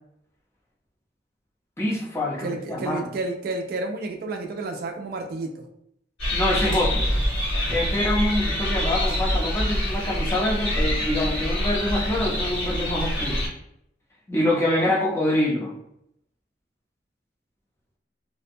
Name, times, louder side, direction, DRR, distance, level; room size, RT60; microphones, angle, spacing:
voice 1, 1.8-3.1 6.3-7.0 7.7-13.4 14.3-15.7, left 1 dB, 15° left, -3 dB, 0.5 m, -25 dB
voice 2, 2.4-5.7, right 2 dB, 55° right, 3 dB, 0.3 m, -31 dB
sound 1, 6.2-13.5, equal, 80° left, 1.2 m, -25 dB
2.5 x 2.2 x 2.6 m, 0.75 s
head